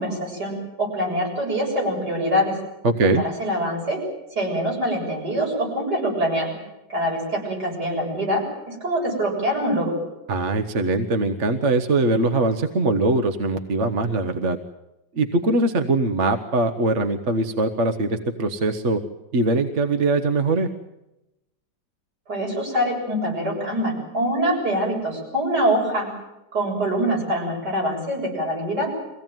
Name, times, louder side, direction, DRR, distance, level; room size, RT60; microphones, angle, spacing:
voice 1, 0.0-2.6 3.2-4.0 4.3-6.6 6.9-10.0 22.3-26.1 26.5-28.9, equal, 65° right, -1 dB, 7.9 m, -24 dB
voice 2, 2.8-3.2 10.3-14.6 15.1-19.0 19.3-20.7, right 2 dB, 45° right, 7 dB, 1.3 m, -22 dB
23.5 x 17.0 x 9.1 m, 0.93 s
omnidirectional pair, 1.9 m